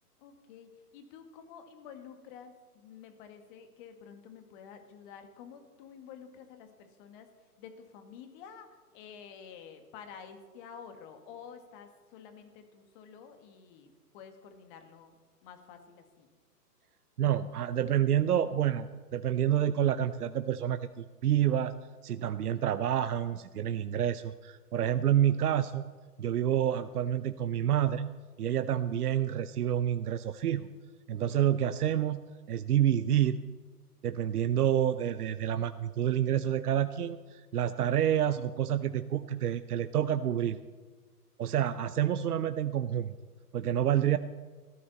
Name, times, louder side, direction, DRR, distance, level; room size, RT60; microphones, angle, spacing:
voice 1, 0.2-7.3 7.6-15.2 15.4-16.3 31.2-31.4, left 7 dB, 30° left, 6 dB, 1.9 m, -50 dB
voice 2, 17.2-21.7 22.0-25.8 26.2-28.1 28.4-30.7 31.1-32.2 32.5-33.4 34.0-40.6 41.4-43.1 43.5-44.2, right 10 dB, 70° right, 12 dB, 0.8 m, -28 dB
19.0 x 13.5 x 4.2 m, 1.4 s
hypercardioid pair, 135°, 47 cm